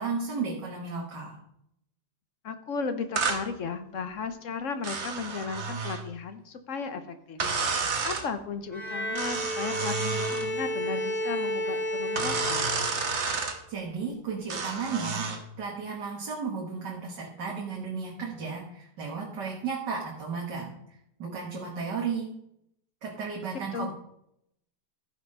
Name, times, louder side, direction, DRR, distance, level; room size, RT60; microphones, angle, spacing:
voice 1, 0.0-1.4 13.7-15.3 15.6-20.8 21.2-22.3 23.0-23.9, right 5 dB, 75° right, -2 dB, 2.2 m, -34 dB
voice 2, 2.4-7.4 8.0-12.6 23.7-23.9, left 5 dB, 55° left, 10 dB, 1.1 m, -35 dB
sound 1, 3.2-3.4 4.8-6.0 7.4-8.3 9.1-10.5 12.2-13.6 14.5-15.4, right 4 dB, 45° right, 1.3 m, -30 dB
Bowed string instrument, 8.7-13.1, equal, 30° left, 2.8 m, -32 dB
14.5 x 5.8 x 5.4 m, 0.78 s
omnidirectional pair, 1.9 m